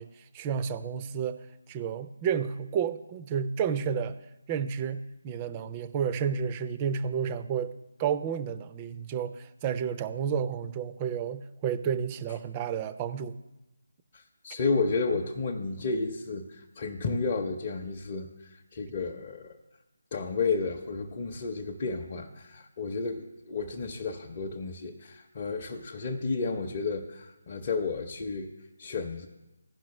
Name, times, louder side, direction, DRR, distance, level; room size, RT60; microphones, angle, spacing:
voice 1, 0.0-4.2 4.5-13.4, right 7 dB, 20° right, 11 dB, 0.4 m, -31 dB
voice 2, 14.1-19.6 20.1-28.5 28.8-29.3, left 4 dB, 30° left, -1 dB, 0.6 m, -32 dB
15.5 x 5.8 x 3.1 m, 0.98 s
figure-of-eight pair, 155°, 0 cm